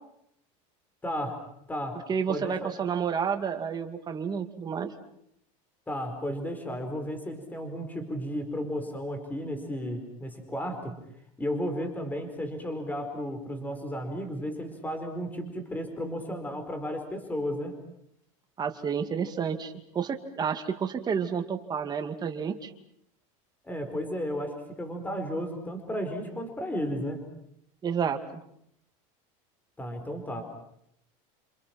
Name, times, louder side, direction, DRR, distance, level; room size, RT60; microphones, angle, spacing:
voice 1, 1.0-1.4 1.7-2.0 2.3-2.7 5.9-11.0 11.4-17.7 23.6-27.2 29.8-30.4, equal, 10° left, 6 dB, 4.7 m, -33 dB
voice 2, 2.1-4.9 18.6-22.7 27.8-28.2, right 7 dB, 25° right, 6 dB, 2.3 m, -30 dB
28.5 x 27.0 x 6.0 m, 0.74 s
supercardioid pair, 135°, 17 cm